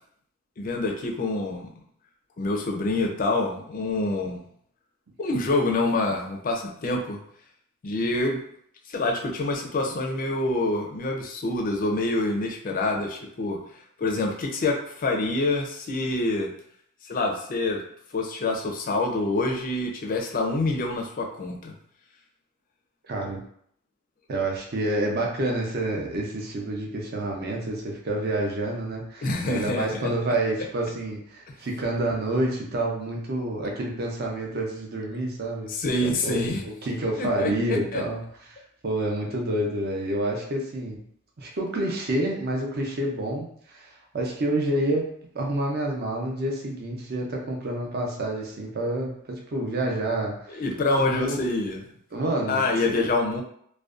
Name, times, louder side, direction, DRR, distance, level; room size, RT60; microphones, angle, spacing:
voice 1, 0.6-1.7 2.4-4.4 5.2-7.2 7.8-8.4 8.9-13.6 14.0-16.5 17.1-17.8 18.1-21.7 29.2-30.1 35.7-36.6 37.2-38.0 50.5-51.8 52.5-53.4, left 2 dB, 45° left, 2 dB, 0.4 m, -26 dB
voice 2, 23.1-23.4 24.3-35.7 36.0-38.2 38.8-41.0 41.4-43.8 44.1-45.1 45.3-50.6 51.0-51.4 52.1-53.1, right 1 dB, 50° right, 0 dB, 0.5 m, -28 dB
2.5 x 2.1 x 2.4 m, 0.66 s
head